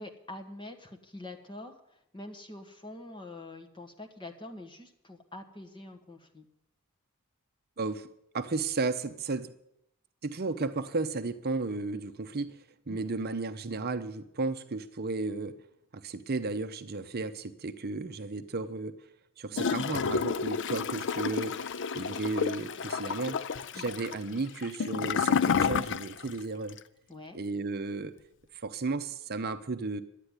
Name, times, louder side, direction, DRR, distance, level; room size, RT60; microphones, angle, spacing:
voice 1, 0.0-6.5 12.9-13.1 23.7-23.9 27.1-27.4, left 2 dB, 20° left, 4 dB, 1.6 m, -45 dB
voice 2, 7.8-8.1 8.3-9.5 10.2-15.6 15.9-19.0 19.4-21.6 21.9-23.4 23.7-26.8 27.3-28.1 28.5-30.0, right 3 dB, 45° right, 9 dB, 0.7 m, -34 dB
Gurgling / Toilet flush, 19.5-26.4 26.7-26.8, left 6 dB, 55° left, 0.5 m, -30 dB
12.0 x 9.0 x 9.8 m, 0.79 s
head